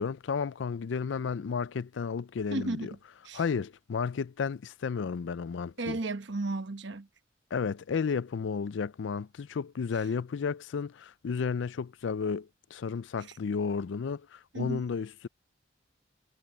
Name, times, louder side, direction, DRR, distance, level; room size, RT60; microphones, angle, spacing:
voice 1, 0.0-2.9 3.3-6.0 7.5-15.3, left 5 dB, 70° left, 0.4 m, -32 dB
voice 2, 2.5-2.9 3.2-3.4 5.8-7.1 14.5-14.8, right 2 dB, 65° right, 1.1 m, -33 dB
head